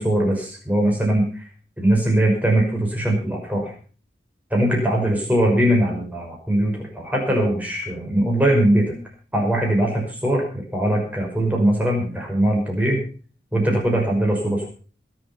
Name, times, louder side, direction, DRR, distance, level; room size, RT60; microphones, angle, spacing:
voice 1, 0.0-1.4 1.8-3.7 4.5-9.0 9.3-13.0 13.5-14.7, right 1 dB, 10° right, -1 dB, 5.6 m, -21 dB
21.5 x 7.8 x 5.7 m, 0.40 s
head